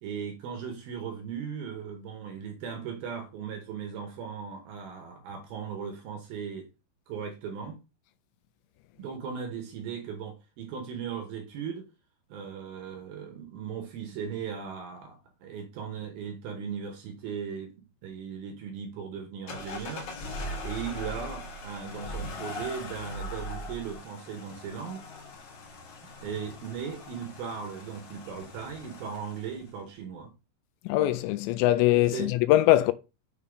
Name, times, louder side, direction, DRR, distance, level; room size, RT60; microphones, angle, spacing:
voice 1, 0.0-6.7 7.1-7.8 9.0-11.9 12.3-17.7 18.0-20.1 20.6-25.1 26.2-30.3 32.1-32.3, right 7 dB, 75° right, 2.3 m, -37 dB
sound 1, 19.5-29.7, left 1 dB, 65° left, 1.9 m, -40 dB
voice 2, 30.9-32.9, left 15 dB, 85° left, 2.6 m, -22 dB
6.9 x 3.6 x 4.8 m
omnidirectional pair, 5.3 m